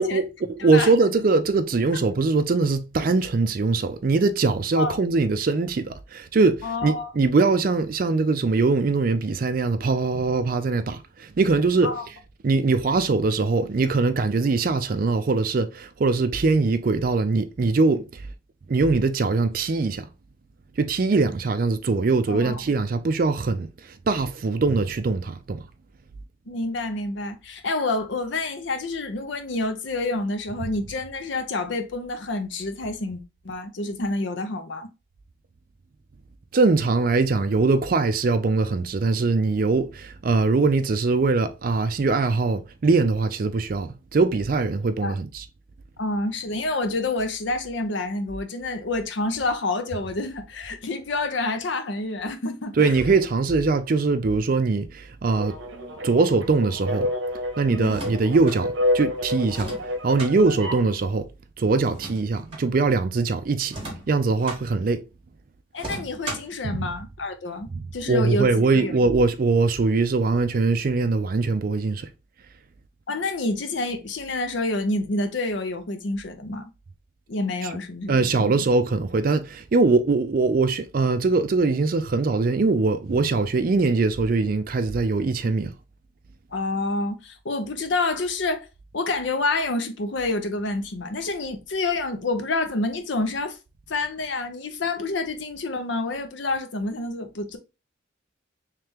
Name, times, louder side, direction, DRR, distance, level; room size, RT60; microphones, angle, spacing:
voice 1, 0.0-11.9 12.4-18.2 18.7-20.1 20.8-23.7 24.1-25.6 36.5-45.4 52.8-57.1 57.6-61.3 61.6-63.8 64.1-65.0 66.6-66.9 67.7-72.1 78.1-85.7, right 3 dB, 45° right, 0.4 m, -22 dB
voice 2, 6.6-7.1 11.8-12.0 22.3-22.6 26.5-34.9 45.0-45.2 46.0-52.9 57.7-58.0 65.7-68.5 68.7-68.9 73.1-76.7 77.3-78.6 86.5-88.7 88.9-93.6 93.9-97.6, left 2 dB, 65° left, 0.6 m, -28 dB
sound 1, 55.3-60.9, left 1 dB, 70° right, 0.8 m, -29 dB
sound 2, 57.8-58.6 59.5-60.3 61.8-62.7 63.7-64.6 65.8-66.6, right 2 dB, 30° right, 1.5 m, -36 dB
3.3 x 3.2 x 3.4 m
head